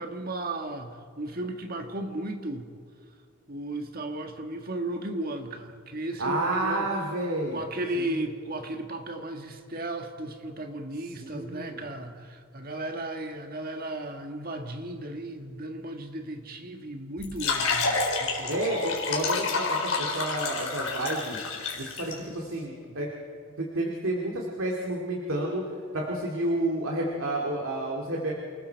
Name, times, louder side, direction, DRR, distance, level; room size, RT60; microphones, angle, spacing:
voice 1, 0.0-2.7 3.5-6.9 7.5-18.6 22.9-23.0, right 1 dB, 45° right, 5 dB, 1.8 m, -35 dB
voice 2, 6.2-7.6 7.9-8.2 11.2-11.8 18.5-21.4 21.7-23.1 23.6-25.6 25.9-28.3, right 1 dB, 75° right, -2 dB, 2.5 m, -30 dB
sound 1, 17.2-22.1, left 4 dB, 75° left, 4.1 m, -29 dB
28.0 x 20.0 x 4.7 m, 2.1 s
head